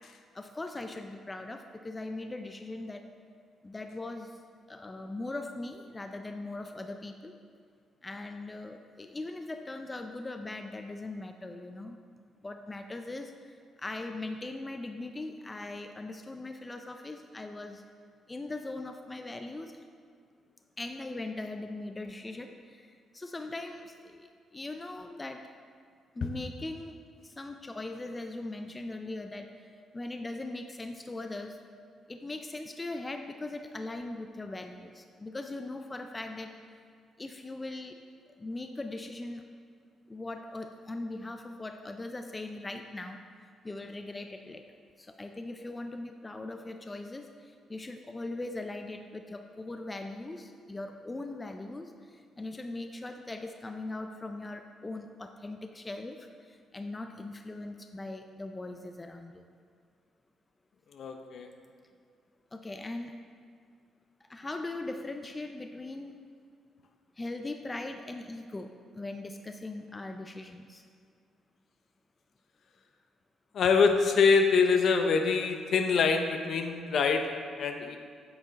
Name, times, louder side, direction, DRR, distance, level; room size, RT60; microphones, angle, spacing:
voice 1, 0.3-3.0 3.6-4.4 4.7-7.3 8.0-12.0 12.4-17.8 18.3-19.8 20.8-25.4 26.2-27.0 27.2-31.6 32.1-36.8 37.2-38.0 38.4-39.4 40.1-43.2 43.6-44.6 45.0-59.5 62.5-63.1 64.3-66.1 67.2-70.8, left 2 dB, 20° left, 6 dB, 0.4 m, -40 dB
voice 2, 60.9-61.5 73.5-77.3 77.5-78.0, left 5 dB, 60° left, 5 dB, 0.7 m, -25 dB
8.7 x 6.4 x 4.0 m, 2.2 s
cardioid pair, 90°, 0 cm